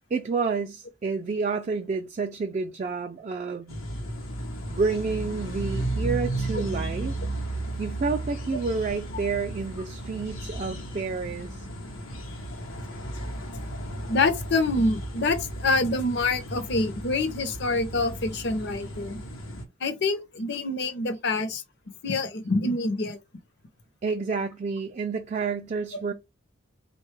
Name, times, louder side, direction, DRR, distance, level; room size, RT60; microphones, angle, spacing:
voice 1, 0.1-3.8 4.7-7.1 7.8-11.7 24.0-26.1, right 4 dB, 35° right, 0.3 m, -29 dB
sound 1, 3.7-19.6, right 1 dB, 90° left, 0.8 m, -34 dB
voice 2, 14.1-19.2 19.8-21.6 22.0-23.2, left 3 dB, 55° left, 0.6 m, -26 dB
3.6 x 2.2 x 3.1 m
head